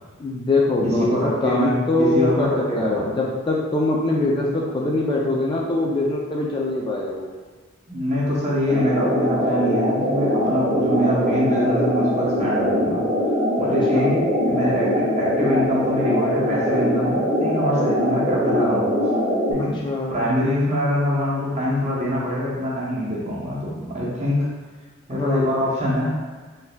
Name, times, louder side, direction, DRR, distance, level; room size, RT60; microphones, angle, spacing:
voice 1, 0.2-7.3 13.9-14.1 19.8-20.2 25.1-25.4, left 2 dB, 20° left, -3 dB, 0.3 m, -23 dB
voice 2, 0.8-1.7 2.0-3.1 7.9-13.0 13.6-19.1 19.5-19.8 20.1-24.5 25.1-26.2, equal, 30° right, -6 dB, 0.8 m, -24 dB
sound 1, 8.7-19.5, equal, ahead, 1.0 m, -22 dB
3.8 x 2.6 x 2.2 m, 1.4 s
head